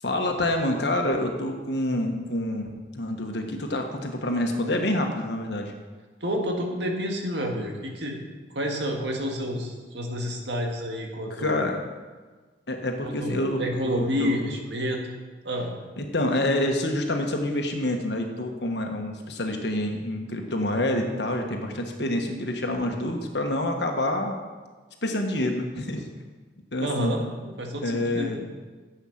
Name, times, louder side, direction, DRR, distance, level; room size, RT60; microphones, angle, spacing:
voice 1, 0.0-5.7 11.4-11.8 12.7-14.4 16.0-24.4 25.0-26.0 26.7-27.2 27.8-28.4, left 1 dB, 65° left, 3 dB, 1.4 m, -27 dB
voice 2, 6.2-8.2 8.5-11.6 13.0-15.0 15.4-15.7 26.8-28.4, equal, 70° right, 1 dB, 1.8 m, -29 dB
10.5 x 8.1 x 6.0 m, 1.4 s
head